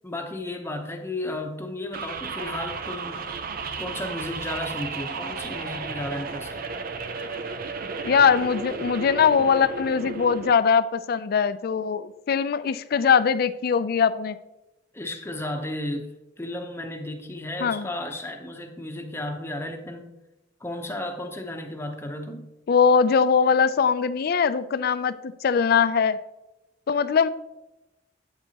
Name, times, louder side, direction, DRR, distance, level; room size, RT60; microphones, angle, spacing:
voice 1, 0.0-3.3 3.8-6.7 14.9-16.1 16.4-20.2 20.6-22.5, left 1 dB, 15° left, 5 dB, 0.8 m, -34 dB
sound 1, 1.9-10.5, right 4 dB, 50° right, 0.5 m, -34 dB
voice 2, 8.0-14.4 17.6-17.9 22.7-26.2 26.9-27.3, left 6 dB, 50° left, 14 dB, 0.4 m, -21 dB
8.9 x 8.0 x 2.9 m, 0.97 s
head